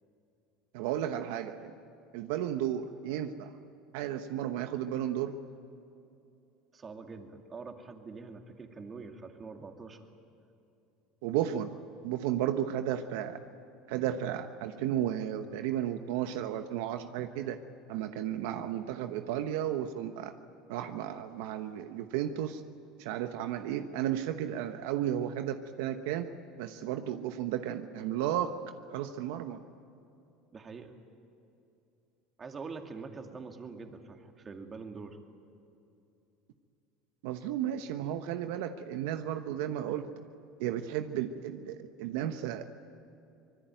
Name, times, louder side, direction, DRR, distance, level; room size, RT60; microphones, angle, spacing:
voice 1, 0.7-1.7 2.1-3.5 3.9-5.3 11.2-11.7 12.0-13.4 13.9-17.6 17.9-20.3 20.7-22.6 23.0-26.3 26.6-28.5 28.9-29.6 37.2-40.1 40.6-42.7, right 11 dB, 80° right, 8 dB, 1.1 m, -33 dB
voice 2, 6.7-10.1 30.5-31.0 32.4-35.2, right 4 dB, 30° right, 4 dB, 2.6 m, -44 dB
25.0 x 20.5 x 9.1 m, 2.7 s
supercardioid pair, 110°, 0 cm